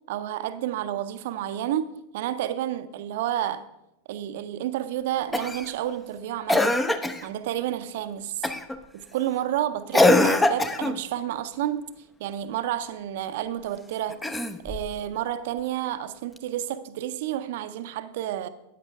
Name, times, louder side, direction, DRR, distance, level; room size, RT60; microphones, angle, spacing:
voice 1, 0.1-3.7 4.1-6.8 7.2-8.5 9.1-11.8 12.2-14.2 14.6-18.5, right 11 dB, 50° right, 0.6 m, -30 dB
Cough, 5.3-5.7 6.5-7.3 8.4-8.8 9.9-11.0 14.1-14.9 16.4-16.5, left 2 dB, 10° left, 0.7 m, -22 dB
13.5 x 9.5 x 3.5 m
figure-of-eight pair, 90°, 0 cm